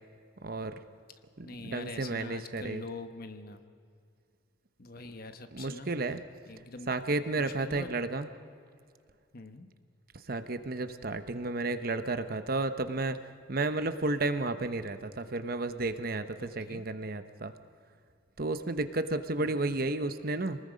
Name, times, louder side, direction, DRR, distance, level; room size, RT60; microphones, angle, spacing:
voice 1, 0.4-0.8 1.4-2.8 5.5-6.2 6.9-8.3 10.1-13.2 13.5-17.5 18.4-20.6, right 2 dB, 50° right, 10 dB, 0.9 m, -32 dB
voice 2, 1.4-3.6 4.8-5.9 6.5-6.9 7.3-7.9 9.3-9.7 16.4-16.8 19.4-19.6, left 3 dB, 50° left, 8 dB, 1.2 m, -44 dB
27.5 x 19.5 x 5.2 m, 2.3 s
head